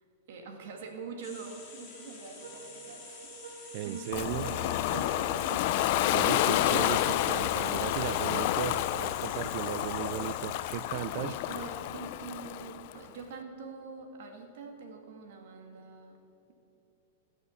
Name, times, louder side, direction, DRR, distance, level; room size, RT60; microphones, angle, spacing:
voice 1, 0.3-5.7 11.3-16.2, right 5 dB, 60° right, 3 dB, 1.8 m, -45 dB
sound 1, 1.2-11.2, left 4 dB, 20° left, 2.4 m, -49 dB
sound 2, 1.4-9.0, right 6 dB, 90° right, 2.9 m, -49 dB
voice 2, 3.7-4.5 6.1-11.3, right 13 dB, 45° right, 16 dB, 0.4 m, -36 dB
Ocean, 4.1-13.0, left 13 dB, 50° left, 0.4 m, -29 dB
16.5 x 6.4 x 7.0 m, 2.9 s
supercardioid pair, 155°, 0 cm